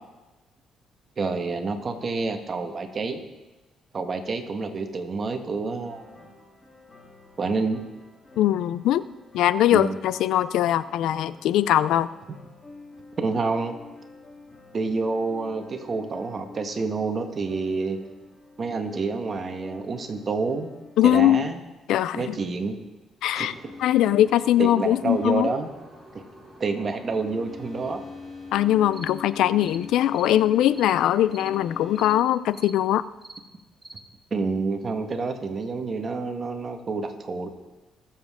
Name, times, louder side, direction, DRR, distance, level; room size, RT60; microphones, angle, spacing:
voice 1, 1.2-3.2 3.9-6.3 7.4-7.8 9.7-10.0 13.2-13.8 14.7-18.0 18.6-20.7 21.0-21.6 22.1-22.8 23.3-23.7 24.6-25.7 26.1-26.2 26.6-28.0 34.3-37.5, right 4 dB, 40° right, 6 dB, 1.4 m, -28 dB
sound 1, 5.8-21.6, left 2 dB, 25° left, 2.9 m, -49 dB
voice 2, 8.4-9.0 9.3-12.1 21.0-21.4 21.9-22.4 23.2-23.5 23.8-25.5 28.5-33.0, left 12 dB, 85° left, 16 dB, 0.4 m, -21 dB
sound 2, 23.3-32.2, left 3 dB, ahead, 4.9 m, -42 dB
sound 3, 28.9-29.1 29.6-29.8 30.1-30.4 30.7-30.9 31.3-31.5 32.0-32.2 32.5-32.8 33.2-33.4 33.8-34.0, right 2 dB, 15° right, 1.2 m, -44 dB
20.5 x 7.6 x 3.7 m, 1.1 s
cardioid pair, 90°, 0 cm